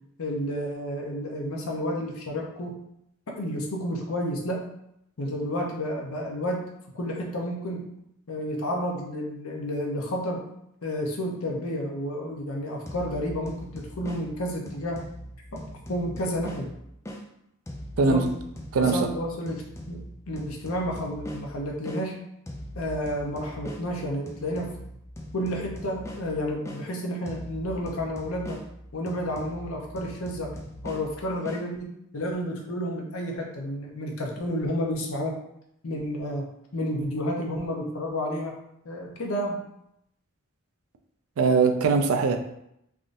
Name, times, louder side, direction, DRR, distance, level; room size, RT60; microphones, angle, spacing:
voice 1, 0.2-2.7 3.3-4.6 5.2-6.7 6.9-7.8 8.3-10.4 10.8-15.0 15.5-15.6 15.9-16.7 18.0-18.3 18.7-20.0 20.3-22.2 22.7-24.7 25.3-28.6 28.9-30.5 30.8-35.4 35.8-36.5 36.7-38.6 38.8-39.6, equal, 80° left, 0 dB, 0.7 m, -31 dB
sound 1, 12.9-17.2 17.7-22.0 22.5-26.8 27.3-31.6, equal, 15° left, 0.4 m, -41 dB
voice 2, 18.7-19.1 41.4-42.4, right 4 dB, 85° right, 6 dB, 0.4 m, -21 dB
3.5 x 2.5 x 2.5 m, 0.78 s
head